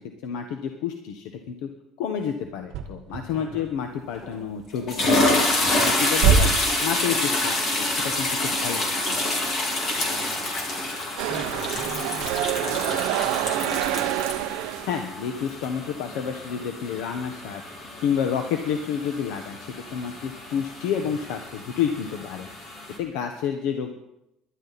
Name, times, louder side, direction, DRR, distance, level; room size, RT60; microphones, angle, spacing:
voice 1, 0.2-1.7 2.0-6.5 6.8-8.8 9.1-9.2 14.9-17.6 18.0-22.5 23.0-24.0, left 8 dB, 85° left, 5 dB, 1.2 m, -29 dB
sound 1, 2.4-10.5, right 7 dB, 55° right, 1.5 m, -28 dB
voice 2, 3.3-3.7 10.0-14.0 21.0-21.1, left 2 dB, 55° left, 2 dB, 4.3 m, -42 dB
sound 2, 4.1-4.4 4.7-23.0, left 1 dB, 30° left, 2.4 m, -28 dB
sound 3, 11.2-15.0, right 16 dB, 85° right, 0.5 m, -27 dB
21.0 x 11.5 x 4.2 m, 0.88 s
cardioid pair, 175°, 0 cm